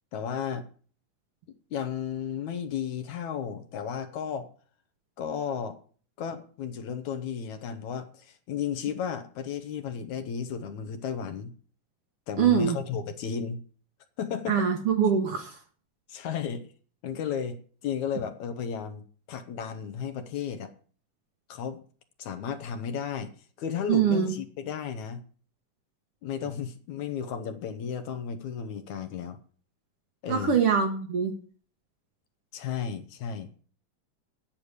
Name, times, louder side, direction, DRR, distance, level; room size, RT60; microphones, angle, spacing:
voice 1, 0.1-0.7 1.7-4.5 5.2-5.8 6.2-11.5 12.3-13.6 14.2-14.7 16.1-16.7 17.0-20.7 21.5-21.8 22.2-25.2 26.2-29.4 30.2-30.6 32.5-33.5, left 7 dB, 65° left, 9 dB, 2.3 m, -34 dB
voice 2, 12.4-12.8 14.5-15.6 23.9-24.3 30.3-31.4, right 7 dB, 55° right, 5 dB, 1.9 m, -23 dB
9.4 x 8.8 x 8.2 m, 0.43 s
omnidirectional pair, 3.9 m